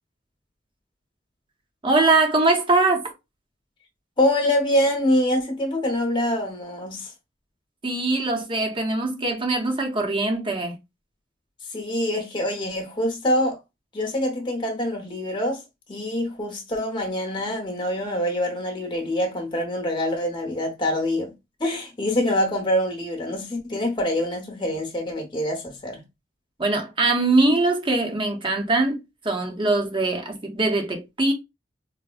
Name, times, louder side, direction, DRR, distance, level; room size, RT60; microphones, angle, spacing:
voice 1, 1.8-3.1 7.8-10.8 26.6-29.0 29.2-31.3, right 2 dB, 25° right, 0.8 m, -22 dB
voice 2, 4.2-7.1 11.7-13.6 13.9-15.6 15.9-21.3 21.6-26.0, left 1 dB, 25° left, 1.0 m, -25 dB
4.8 x 2.1 x 2.4 m
head